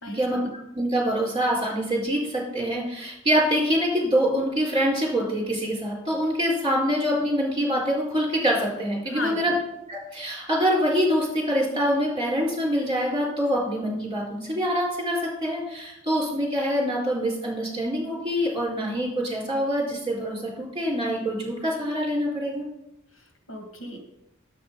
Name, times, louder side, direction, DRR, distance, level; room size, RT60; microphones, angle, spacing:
voice 1, 0.7-9.5 9.9-22.7, equal, 25° right, -2 dB, 4.6 m, -25 dB
voice 2, 9.1-9.6 23.2-24.0, left 1 dB, 75° left, 3 dB, 2.0 m, -35 dB
9.4 x 8.2 x 5.5 m, 0.81 s
head